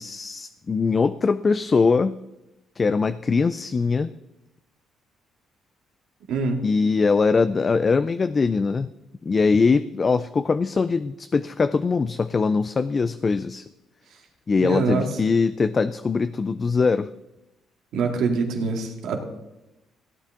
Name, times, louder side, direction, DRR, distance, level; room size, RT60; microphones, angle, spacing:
voice 1, 0.0-2.1 2.8-4.1 6.6-8.9 9.2-13.6 14.5-17.1, left 4 dB, 35° left, 13 dB, 0.4 m, -22 dB
voice 2, 6.3-6.6 14.6-15.1 17.9-19.2, right 4 dB, 80° right, 2 dB, 2.2 m, -24 dB
16.5 x 9.1 x 3.8 m, 0.95 s
cardioid pair, 85°, 0 cm